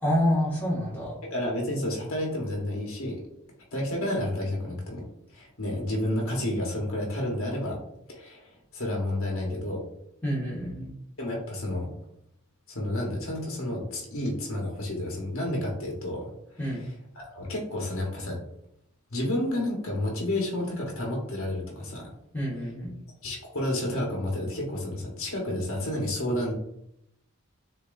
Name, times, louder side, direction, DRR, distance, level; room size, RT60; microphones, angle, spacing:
voice 1, 0.0-1.2 10.2-10.9 16.6-16.9 22.3-22.9, equal, 10° left, -7 dB, 1.7 m, -27 dB
voice 2, 1.2-3.2 3.7-5.0 5.3-7.8 8.1-9.8 11.2-11.9 12.7-16.3 17.3-18.4 19.1-22.1 23.2-26.5, left 1 dB, 75° left, -2 dB, 1.3 m, -30 dB
6.8 x 2.9 x 2.6 m, 0.79 s
head